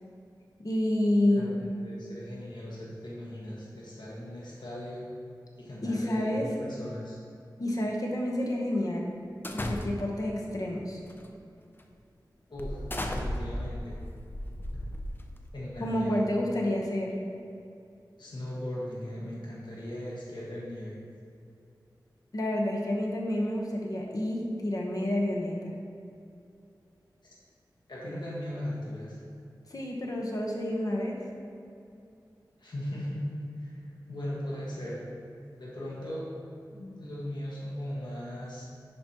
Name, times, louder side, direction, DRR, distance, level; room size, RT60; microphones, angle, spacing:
voice 1, 0.6-1.5 5.8-6.5 7.6-9.1 9.5-11.0 15.8-17.1 22.3-25.7 29.7-31.2, left 1 dB, 50° left, -1 dB, 1.1 m, -29 dB
voice 2, 1.3-5.1 5.6-7.2 12.5-14.0 15.5-16.2 18.2-21.0 27.2-27.3 27.9-29.2 32.6-35.0 35.6-36.3 36.7-38.7, left 1 dB, 80° left, -6 dB, 1.6 m, -38 dB
sound 1, 9.4-10.3 11.1-11.3 11.8-11.9 12.6-15.5, left 1 dB, 30° left, 0.6 m, -35 dB
10.5 x 5.1 x 3.0 m, 2.6 s
wide cardioid pair, 90°, 8 cm